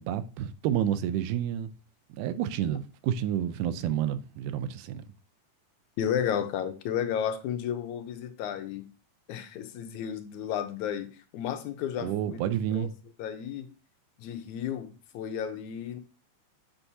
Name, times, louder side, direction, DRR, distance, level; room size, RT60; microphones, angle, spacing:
voice 1, 0.0-1.7 2.2-5.0 12.0-12.9, right 10 dB, 80° right, 2.1 m, -29 dB
voice 2, 6.0-8.9 9.3-12.4 12.7-12.9 13.2-13.7 14.2-16.0, left 9 dB, 75° left, 2.1 m, -33 dB
7.1 x 7.0 x 2.7 m
omnidirectional pair, 3.6 m